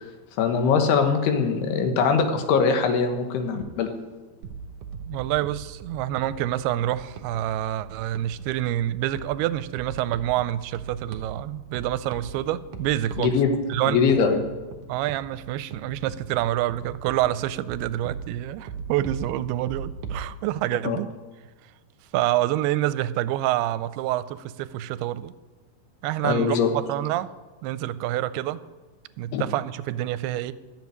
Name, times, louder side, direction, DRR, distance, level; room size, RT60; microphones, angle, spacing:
voice 1, 0.4-3.9 13.2-13.5 13.9-14.4 20.8-21.0 26.2-26.7 29.3-29.4, left 5 dB, 85° left, 6 dB, 3.3 m, -22 dB
sound 1, 4.4-20.3, right 5 dB, 65° right, 2.3 m, -40 dB
voice 2, 5.1-13.4 13.7-14.0 14.9-21.1 22.1-25.3 26.0-27.3 27.6-28.6 29.2-30.5, right 14 dB, 90° right, 15 dB, 2.5 m, -27 dB
13.5 x 7.4 x 9.5 m, 1.3 s
omnidirectional pair, 4.5 m